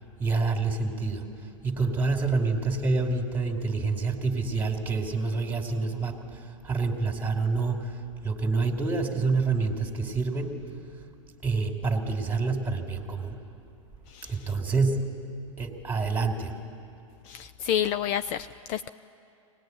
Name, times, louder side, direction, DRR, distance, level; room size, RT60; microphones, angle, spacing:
voice 1, 0.2-1.3 1.6-10.6 11.4-13.4 14.3-15.1 15.6-16.6, right 4 dB, 10° right, 2 dB, 2.6 m, -27 dB
voice 2, 14.1-14.6 17.2-18.9, left 10 dB, 40° left, 12 dB, 0.5 m, -30 dB
23.5 x 19.0 x 9.4 m, 2.6 s
hypercardioid pair, 105°, 17 cm